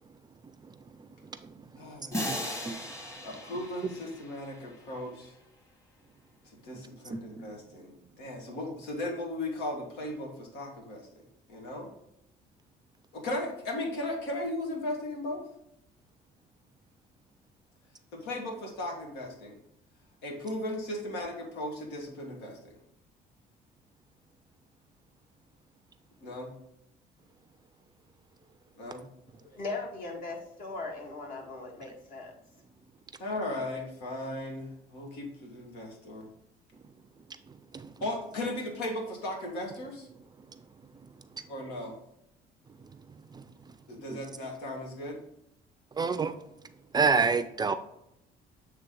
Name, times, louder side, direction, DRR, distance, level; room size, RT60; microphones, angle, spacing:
voice 1, 1.8-2.8 3.2-5.3 6.6-11.1 11.5-11.9 13.1-15.5 18.1-19.6 20.2-22.7 26.2-26.5 28.8-29.0 33.2-36.3 38.0-40.1 41.5-42.0 43.9-45.2, left 1 dB, 90° left, 1.6 m, -37 dB
sound 1, 2.1-4.9, equal, 20° left, 1.3 m, -37 dB
voice 2, 29.4-32.3, left 3 dB, 55° left, 1.8 m, -39 dB
voice 3, 46.0-46.3 46.9-47.7, right 5 dB, 25° right, 0.4 m, -25 dB
8.0 x 3.3 x 3.8 m
cardioid pair, 110°, 17 cm